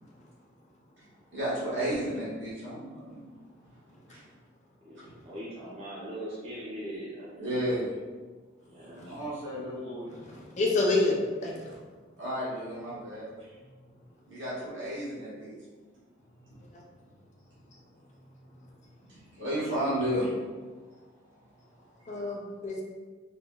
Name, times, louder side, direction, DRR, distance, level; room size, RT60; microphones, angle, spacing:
voice 1, 1.3-3.3 4.1-4.2 5.0-5.1 7.3-7.9 9.0-10.1 12.2-13.5 14.3-15.5 16.5-16.6 19.1-20.3 22.0-22.3, equal, 70° right, -9 dB, 1.3 m, -33 dB
voice 2, 5.3-7.5 8.7-9.1, right 1 dB, 30° right, -8 dB, 0.5 m, -40 dB
voice 3, 10.2-11.8 22.1-22.8, left 2 dB, 35° left, -1 dB, 0.4 m, -28 dB
3.6 x 2.4 x 2.3 m, 1.4 s
head